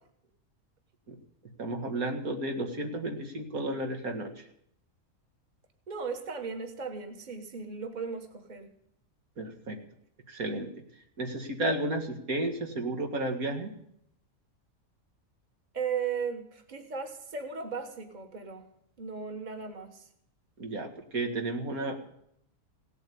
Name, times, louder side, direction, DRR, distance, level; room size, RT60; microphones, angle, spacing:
voice 1, 1.6-4.3 9.4-9.8 10.3-10.7 11.2-13.7 20.6-22.1, right 1 dB, 90° right, 3 dB, 2.4 m, -32 dB
voice 2, 5.9-8.7 15.7-18.7 19.0-20.1, right 6 dB, 35° right, 5 dB, 1.6 m, -36 dB
17.0 x 8.2 x 8.5 m, 0.71 s
omnidirectional pair, 1.5 m